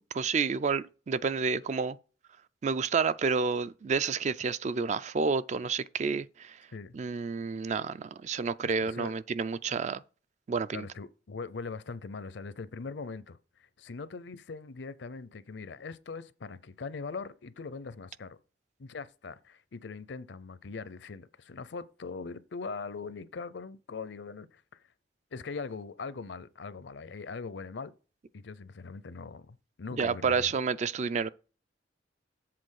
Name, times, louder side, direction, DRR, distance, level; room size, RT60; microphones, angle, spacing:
voice 1, 0.0-2.0 2.6-6.6 6.9-10.0 10.5-10.9 30.0-31.3, right 5 dB, 40° right, 0.4 m, -30 dB
voice 2, 8.8-9.1 10.7-13.4 13.8-18.4 18.8-24.8 25.3-27.9 28.3-30.6, left 4 dB, 70° left, 0.6 m, -41 dB
7.7 x 3.8 x 6.4 m
head